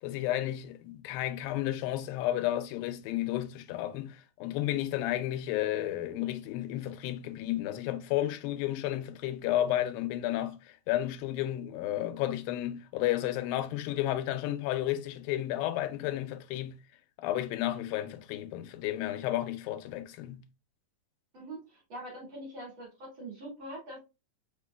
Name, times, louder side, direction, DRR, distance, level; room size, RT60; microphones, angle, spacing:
voice 1, 0.0-16.8 17.2-20.4, left 13 dB, 90° left, 2.4 m, -32 dB
voice 2, 21.3-24.0, right 1 dB, 40° right, 2.2 m, -43 dB
5.2 x 3.8 x 2.2 m
omnidirectional pair, 4.0 m